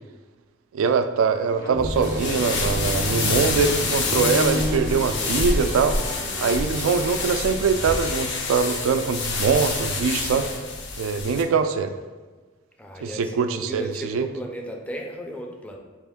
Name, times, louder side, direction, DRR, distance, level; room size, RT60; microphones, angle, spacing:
voice 1, 0.7-6.0 6.4-10.5 11.0-11.9 13.0-14.3, right 5 dB, 80° right, 9 dB, 0.3 m, -23 dB
sound 1, 1.4-5.6, equal, 80° left, 1.3 m, -31 dB
sound 2, 1.9-11.4, left 3 dB, 60° left, 0.5 m, -27 dB
sound 3, 1.9-8.5, right 1 dB, 50° right, 0.7 m, -37 dB
voice 2, 12.8-15.8, equal, 5° left, 1 dB, 0.4 m, -35 dB
4.3 x 2.4 x 3.5 m, 1.3 s
head